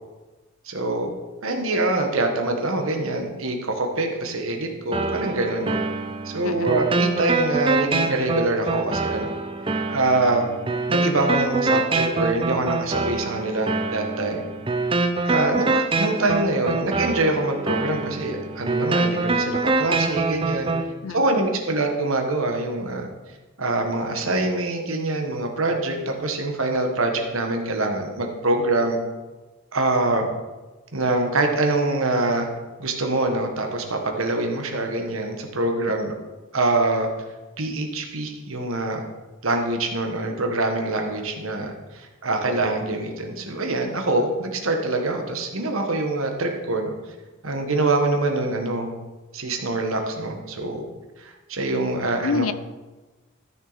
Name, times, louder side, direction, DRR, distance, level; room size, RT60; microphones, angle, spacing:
voice 1, 0.6-1.1 1.4-5.8 6.2-9.4 9.9-10.5 10.9-14.4 15.2-20.7 21.1-23.1 23.6-29.0 29.7-30.3 30.9-32.5 32.8-36.2 36.5-37.1 37.6-39.0 39.4-46.9 47.4-48.9 49.3-50.8 51.2-52.5, right 2 dB, 75° right, 3 dB, 1.4 m, -24 dB
sound 1, 4.9-20.9, right 3 dB, 25° right, 0.6 m, -25 dB
voice 2, 6.4-6.8 21.0-21.5 52.2-52.5, left 4 dB, 80° left, 15 dB, 0.5 m, -27 dB
13.5 x 6.3 x 4.1 m, 1.2 s
head